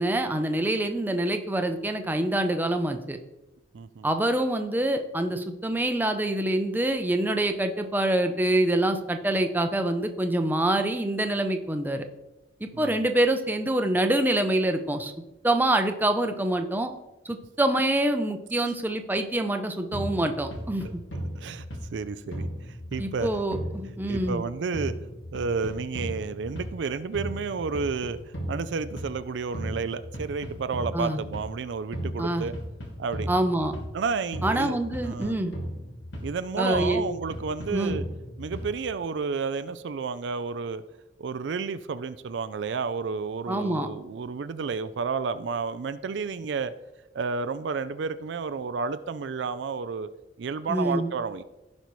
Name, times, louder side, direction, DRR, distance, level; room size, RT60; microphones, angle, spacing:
voice 1, 0.0-3.2 4.0-12.0 12.6-15.1 15.4-16.9 17.2-20.8 23.0-24.4 30.9-31.2 32.2-32.5 33.3-33.8 34.4-35.5 36.6-37.0 37.7-38.0 43.5-43.9 50.7-51.1, right 1 dB, 10° right, 6 dB, 0.6 m, -26 dB
voice 2, 3.7-4.1 12.7-13.1 20.8-20.9 21.3-21.7 21.9-23.3 24.1-24.9 25.3-28.2 28.5-32.5 33.0-33.3 33.9-34.8 35.0-35.3 36.2-38.0 38.4-40.8 41.2-46.7 47.1-50.1 50.4-51.4, right 5 dB, 65° right, 12 dB, 0.4 m, -31 dB
sound 1, 19.9-22.0 22.3-24.5 24.7-26.8 27.1-29.2 29.5-31.5 31.9-34.0 34.3-36.4 36.7-38.8, equal, 80° left, 2.1 m, -36 dB
16.0 x 5.3 x 3.1 m, 1.0 s
head